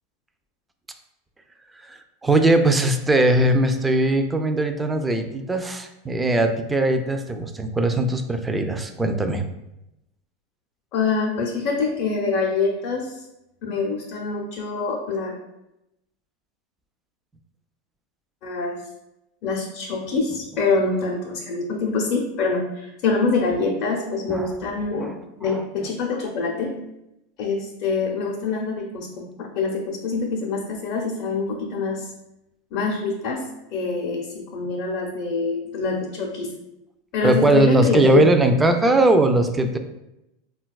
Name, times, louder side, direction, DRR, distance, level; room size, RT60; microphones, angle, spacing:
voice 1, 1.7-9.4 24.3-24.5 25.0-25.1 25.4-25.6 37.2-39.8, right 2 dB, 10° right, 7 dB, 0.3 m, -20 dB
voice 2, 10.9-13.3 13.6-15.3 18.4-18.8 19.4-25.1 25.4-26.7 27.4-29.1 29.4-32.1 32.7-33.4 33.7-36.5 37.1-38.3, left 4 dB, 55° left, -2 dB, 0.5 m, -25 dB
3.9 x 2.2 x 2.3 m, 0.89 s
hypercardioid pair, 110°, 0 cm